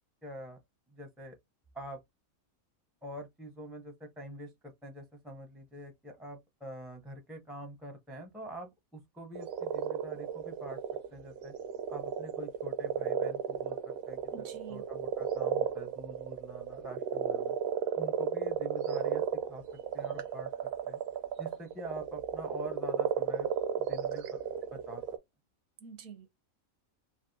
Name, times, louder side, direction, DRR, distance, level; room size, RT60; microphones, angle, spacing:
voice 1, 0.2-0.6 0.9-1.4 1.7-2.0 3.0-10.8 11.1-11.5 11.9-17.5 18.0-19.2 19.5-19.6 19.9-21.0 21.4-23.5 23.8-24.4 24.7-25.0, right 1 dB, ahead, 0.4 m, -45 dB
sound 1, 9.3-25.2, right 8 dB, 65° right, 0.6 m, -34 dB
voice 2, 14.3-14.8 25.8-26.3, right 7 dB, 80° right, 1.2 m, -47 dB
3.3 x 2.5 x 2.6 m
omnidirectional pair, 1.5 m